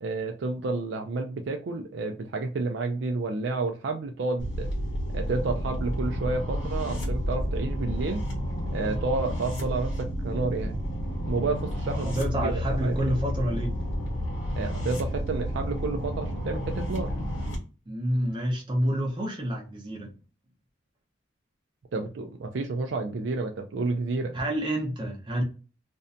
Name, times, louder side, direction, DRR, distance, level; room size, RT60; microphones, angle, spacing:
voice 1, 0.0-4.7 5.1-8.2 8.7-10.8 11.3-13.0 14.5-17.1 21.9-24.4, right 3 dB, 60° right, 0.4 m, -30 dB
sound 1, 4.4-17.6, equal, 70° left, 1.1 m, -31 dB
voice 2, 11.9-13.7 17.9-20.2 24.3-25.4, equal, 25° right, 0.7 m, -28 dB
2.6 x 2.1 x 2.5 m
head